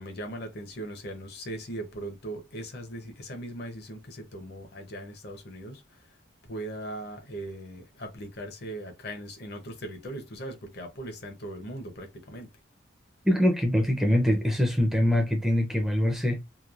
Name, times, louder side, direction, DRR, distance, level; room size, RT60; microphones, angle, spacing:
voice 1, 0.0-5.8 6.5-12.5, right 1 dB, 55° left, 0.7 m, -39 dB
voice 2, 13.2-16.4, left 1 dB, ahead, 0.5 m, -23 dB
3.1 x 2.2 x 2.4 m
head